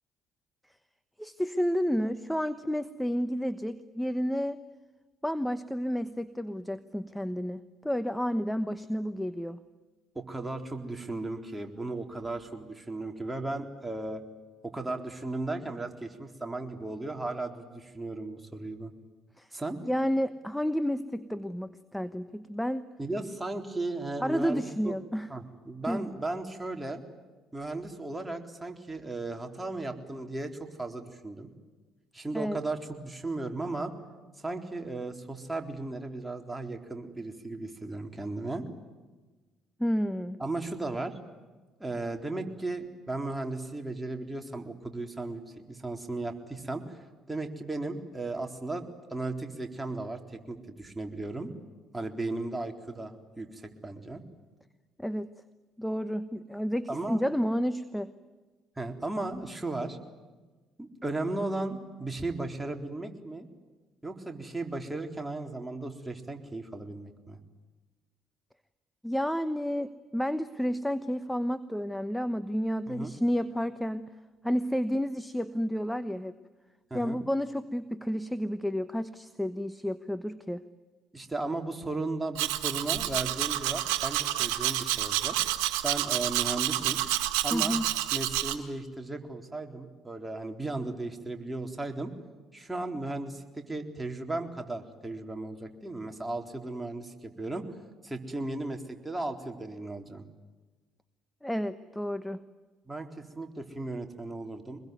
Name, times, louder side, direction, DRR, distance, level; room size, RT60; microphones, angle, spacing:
voice 1, 1.2-4.6 5.2-9.6 19.4-19.5 19.9-22.9 24.2-25.3 25.9-26.1 32.3-32.6 39.8-40.4 55.0-55.3 55.8-58.1 69.0-74.1 74.4-76.3 76.9-80.6 87.5-87.9 101.4-102.4, equal, 5° left, 12 dB, 1.1 m, -31 dB
voice 2, 10.1-14.2 14.6-18.9 19.5-19.8 23.0-24.9 25.3-27.0 27.5-31.5 32.1-33.9 34.4-38.6 40.4-41.2 41.8-48.8 49.1-51.5 51.9-54.2 56.9-57.2 58.8-60.0 60.8-63.5 64.0-67.4 72.9-73.1 76.9-77.2 81.1-85.4 85.8-87.0 87.4-87.8 88.1-92.1 92.5-97.8 98.0-100.2 102.9-104.8, right 2 dB, 10° right, 3 dB, 3.9 m, -36 dB
Domestic sounds home sounds, 82.3-88.5, right 14 dB, 75° right, 1.8 m, -29 dB
25.0 x 21.5 x 9.5 m, 1.3 s
hypercardioid pair, 55°, 0 cm